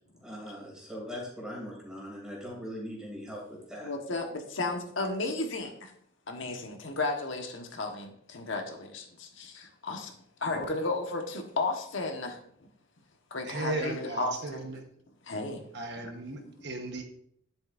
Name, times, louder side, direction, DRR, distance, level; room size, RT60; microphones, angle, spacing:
voice 1, 0.2-3.9, equal, 5° right, -3 dB, 2.8 m, -40 dB
voice 2, 3.8-5.9 6.3-10.1 10.4-12.4 13.3-14.6 15.2-15.6 16.0-16.7, left 3 dB, 80° left, 3 dB, 1.3 m, -34 dB
voice 3, 13.5-14.8 15.7-17.0, right 2 dB, 60° right, 4 dB, 1.2 m, -36 dB
10.5 x 7.7 x 2.6 m, 0.67 s
head